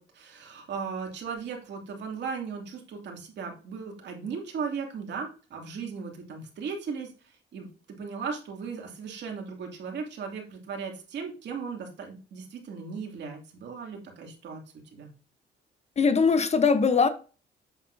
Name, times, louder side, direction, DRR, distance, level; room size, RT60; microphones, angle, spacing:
voice 1, 0.0-7.1 7.5-14.6 14.9-15.1, right 5 dB, 65° right, 1 dB, 2.7 m, -37 dB
voice 2, 16.0-17.1, left 5 dB, 35° left, 11 dB, 1.0 m, -21 dB
8.1 x 7.8 x 2.8 m, 0.35 s
cardioid pair, 95°, 19 cm